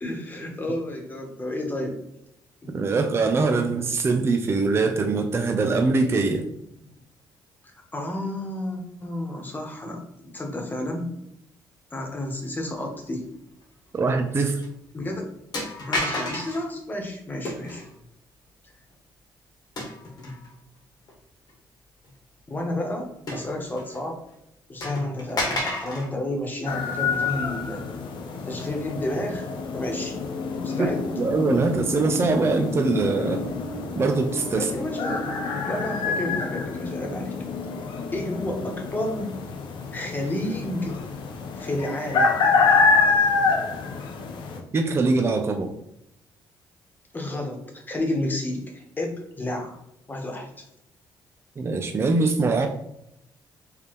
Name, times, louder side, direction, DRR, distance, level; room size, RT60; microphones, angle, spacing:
voice 1, 0.0-1.9 2.6-2.8 7.9-10.0 10.3-11.1 11.9-13.2 14.9-15.3 15.9-17.8 22.5-24.2 24.7-27.8 28.4-30.2 30.6-31.0 34.5-35.3 35.6-37.4 38.1-39.4 39.9-41.0 41.6-42.6 47.1-49.8 50.1-50.5, left 1 dB, 25° left, 1 dB, 1.3 m, -31 dB
voice 2, 2.7-6.5 13.9-14.6 30.8-30.9 31.2-33.4 34.0-34.7 44.7-45.7 51.6-52.7, right 3 dB, 30° right, 5 dB, 0.5 m, -23 dB
sound 1, 14.1-14.3 14.6-14.7 15.5-16.7 17.4-17.9 19.8-20.5 21.1-21.2 23.3-24.0 24.3-24.4 24.8-26.1, left 1 dB, 55° left, 1.2 m, -31 dB
sound 2, 26.7-44.6, left 4 dB, 75° left, 0.8 m, -26 dB
4.7 x 3.3 x 3.0 m, 0.82 s
cardioid pair, 90°, 8 cm